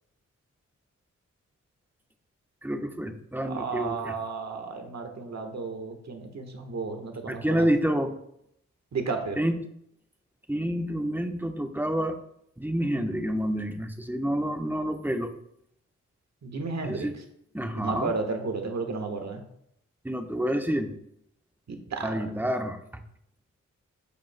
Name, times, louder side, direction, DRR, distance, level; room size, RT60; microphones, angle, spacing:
voice 1, 2.6-4.1 7.3-8.1 9.4-9.6 10.5-12.2 12.6-15.3 16.8-17.1 17.5-18.1 20.0-20.9 22.0-22.8, equal, 5° right, 5 dB, 1.0 m, -28 dB
voice 2, 3.4-7.7 8.9-9.4 16.4-17.2 17.7-19.4 21.7-22.3, right 4 dB, 55° right, 5 dB, 1.4 m, -33 dB
13.5 x 5.1 x 2.2 m, 0.73 s
cardioid pair, 45°, 31 cm